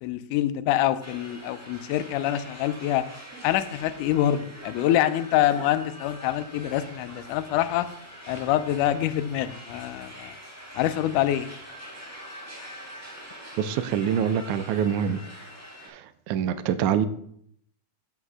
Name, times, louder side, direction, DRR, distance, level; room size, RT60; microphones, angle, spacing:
voice 1, 0.0-3.0 3.4-7.9 8.3-10.4 10.8-11.5, left 12 dB, 80° left, 2.0 m, -25 dB
sound 1, 1.0-15.9, equal, 20° right, 0.4 m, -44 dB
voice 2, 13.6-15.2 15.8-17.1, right 8 dB, 80° right, 1.9 m, -25 dB
8.0 x 5.5 x 4.8 m
omnidirectional pair, 3.7 m